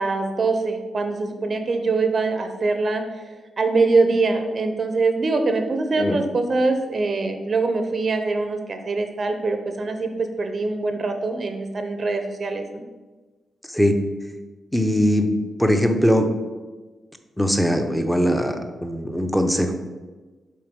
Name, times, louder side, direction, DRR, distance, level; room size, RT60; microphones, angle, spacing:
voice 1, 0.0-3.0 3.6-12.8, right 3 dB, 40° right, 6 dB, 0.6 m, -23 dB
voice 2, 14.7-15.3 15.6-16.3 17.4-19.7, equal, 5° left, 6 dB, 0.7 m, -20 dB
7.6 x 3.9 x 5.2 m, 1.3 s
cardioid pair, 120°, 0 cm